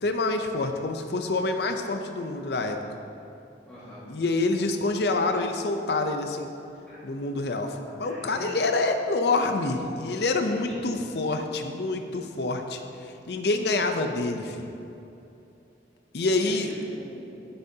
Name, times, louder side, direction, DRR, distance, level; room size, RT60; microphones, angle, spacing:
voice 1, 0.0-2.8 4.1-6.5 7.0-14.6 16.1-16.7, left 2 dB, 65° left, 5 dB, 0.6 m, -27 dB
voice 2, 3.7-4.0 6.9-7.0 8.0-8.6 9.9-11.0 16.4-17.5, equal, 5° left, -12 dB, 1.7 m, -44 dB
10.0 x 9.8 x 2.8 m, 2.8 s
head